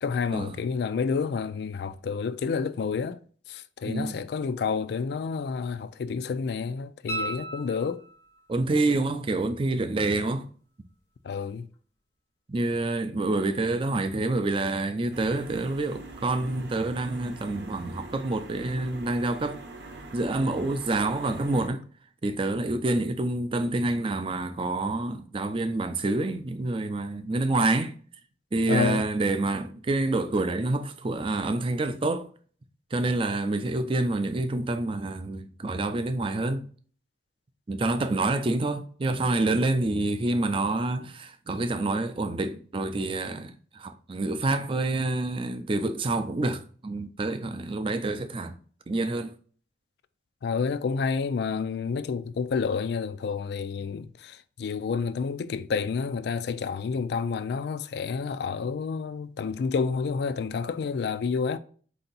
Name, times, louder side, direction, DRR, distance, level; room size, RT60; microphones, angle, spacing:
voice 1, 0.0-3.2 3.5-8.0 11.2-11.7 28.7-29.1 50.4-61.6, left 5 dB, 65° left, 0.3 m, -29 dB
voice 2, 3.9-4.2 8.5-10.5 12.5-19.6 20.1-21.8 22.2-28.0 28.5-32.3 32.9-36.7 37.7-48.5 48.9-49.3, right 2 dB, 30° right, 0.4 m, -27 dB
sound 1, 7.1-8.4 11.2-11.3, right 2 dB, 15° left, 0.6 m, -35 dB
sound 2, 15.1-21.7, right 2 dB, 70° right, 0.8 m, -44 dB
4.4 x 2.8 x 3.9 m
head